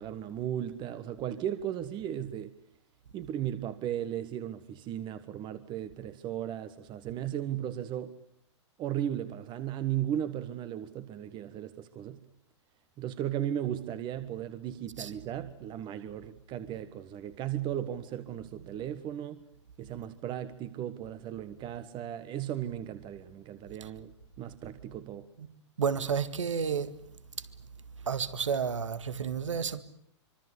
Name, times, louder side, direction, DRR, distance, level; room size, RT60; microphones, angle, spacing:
voice 1, 0.0-2.5 3.1-8.1 8.8-12.2 13.0-19.4 19.8-25.3, right 11 dB, 30° right, 1.4 m, -36 dB
voice 2, 25.8-26.9 28.1-29.8, right 6 dB, 90° right, 1.9 m, -31 dB
25.5 x 24.5 x 8.3 m
hypercardioid pair, 130°, 15 cm